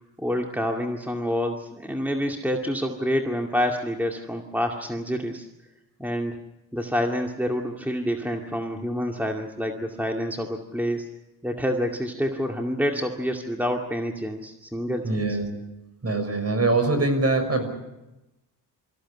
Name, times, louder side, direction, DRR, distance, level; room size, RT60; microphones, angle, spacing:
voice 1, 0.2-5.5 6.0-6.4 6.7-11.1 11.4-15.4, equal, 5° right, 2 dB, 2.2 m, -27 dB
voice 2, 15.0-15.5 16.0-17.6, right 2 dB, 35° right, 7 dB, 6.0 m, -23 dB
25.0 x 15.0 x 9.8 m, 0.99 s
cardioid pair, 85°, 42 cm